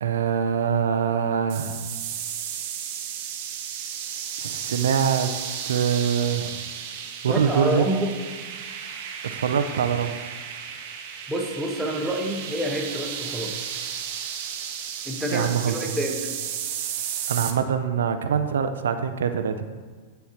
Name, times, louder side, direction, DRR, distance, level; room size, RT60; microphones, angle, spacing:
voice 1, 0.0-1.8 4.4-5.3 5.6-6.6 7.2-7.8 9.3-10.2 15.3-16.0 17.3-19.7, right 7 dB, 85° right, 8 dB, 0.4 m, -24 dB
sound 1, 1.5-17.5, right 8 dB, 55° right, 0.8 m, -34 dB
voice 2, 7.3-8.1 11.3-13.6 15.0-16.4, right 1 dB, 5° right, -1 dB, 1.1 m, -28 dB
9.8 x 4.5 x 2.9 m, 1.5 s
hypercardioid pair, 125°, 0 cm